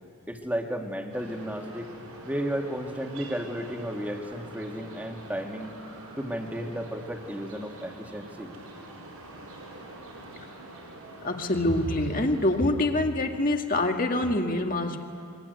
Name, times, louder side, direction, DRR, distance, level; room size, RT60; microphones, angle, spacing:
voice 1, 0.3-1.9 2.2-5.7 6.2-8.5 10.3-10.4, equal, 5° right, 2 dB, 2.0 m, -33 dB
sound 1, 1.1-12.6, right 2 dB, 85° right, 6.9 m, -45 dB
voice 2, 11.2-15.0, left 1 dB, 40° left, 4 dB, 1.9 m, -25 dB
25.0 x 23.5 x 9.4 m, 2.4 s
head